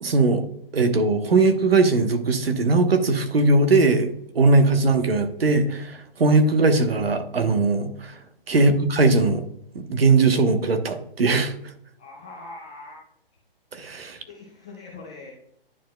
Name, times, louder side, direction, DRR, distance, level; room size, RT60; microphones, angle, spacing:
voice 1, 0.0-0.4 0.7-8.2 8.5-9.4 9.7-11.5 13.7-14.2, right 3 dB, 80° right, 7 dB, 1.1 m, -20 dB
voice 2, 12.0-13.0 14.3-15.3, left 3 dB, 10° left, -4 dB, 0.3 m, -42 dB
10.0 x 4.6 x 2.2 m, 0.70 s
hypercardioid pair, 140°, 30 cm